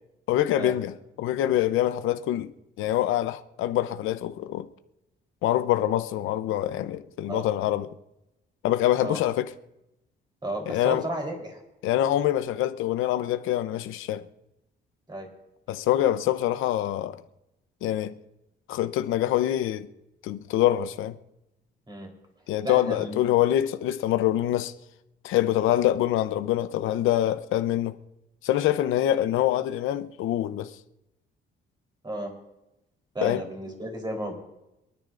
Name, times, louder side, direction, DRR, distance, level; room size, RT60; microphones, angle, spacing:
voice 1, 0.3-2.5 2.8-4.6 5.4-7.9 8.6-9.5 10.7-11.0 11.8-14.2 15.7-17.2 17.8-18.1 18.7-19.9 20.2-21.2 22.5-24.7 25.2-28.0 28.4-30.7 33.2-33.4, left 13 dB, 90° left, 0.7 m, -25 dB
voice 2, 10.4-11.6 15.1-15.3 21.9-22.1 22.6-23.2 32.0-32.3 33.1-34.3, right 1 dB, 20° right, 3.7 m, -33 dB
27.0 x 9.9 x 2.5 m
cardioid pair, 90°, 20 cm